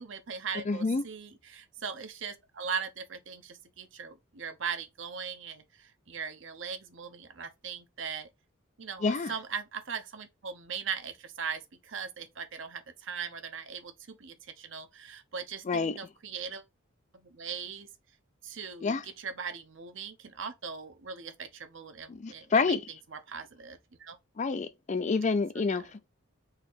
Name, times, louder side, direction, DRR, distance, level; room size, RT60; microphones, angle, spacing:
voice 1, 0.0-8.3 8.8-16.6 17.2-17.9 18.4-18.9 19.2-22.8 23.3-24.2 25.6-25.7, right 6 dB, 60° right, 0.8 m, -39 dB
voice 2, 0.7-1.0 9.0-9.3 15.6-16.0 18.8-19.1 22.1-22.8 24.4-26.1, left 4 dB, 35° left, 0.4 m, -28 dB
4.1 x 2.9 x 3.9 m
head